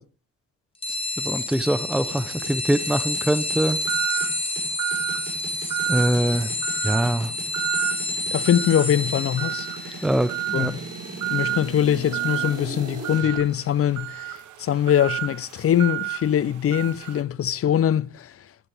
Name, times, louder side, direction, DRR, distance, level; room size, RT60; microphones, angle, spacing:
sound 1, 0.8-12.9, left 2 dB, 15° left, 2.1 m, -30 dB
voice 1, 1.2-3.8 5.9-6.5 6.8-7.3 10.0-10.7, right 1 dB, ahead, 0.7 m, -23 dB
sound 2, 2.1-13.4, right 4 dB, 55° right, 7.6 m, -39 dB
sound 3, 3.9-4.4 4.8-5.3 5.7-6.2 6.6-7.1 7.5-8.0 8.5-8.9 9.4-9.8 10.3-10.7 11.2-11.6 12.1-12.5 13.0-17.2, right 13 dB, 75° right, 1.1 m, -29 dB
voice 2, 8.3-10.0 10.5-10.8 11.3-14.3 14.6-18.3, left 10 dB, 50° left, 0.6 m, -22 dB
15.0 x 11.0 x 3.5 m
cardioid pair, 90°, 30 cm